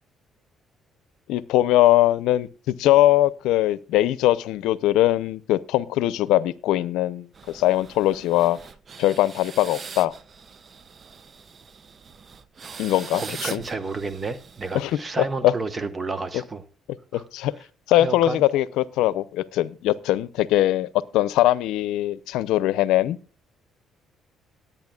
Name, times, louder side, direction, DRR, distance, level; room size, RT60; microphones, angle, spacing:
voice 1, 1.3-8.6 9.0-10.1 12.8-13.6 14.7-15.5 16.3-16.4 17.1-17.5 17.9-23.2, left 14 dB, 85° left, 0.6 m, -21 dB
sound 1, 7.3-15.3, right 5 dB, 45° right, 0.6 m, -42 dB
voice 2, 13.1-16.6 17.1-17.2 17.9-18.4, right 3 dB, 30° right, 1.1 m, -31 dB
18.5 x 8.8 x 2.4 m
supercardioid pair, 75°, 0 cm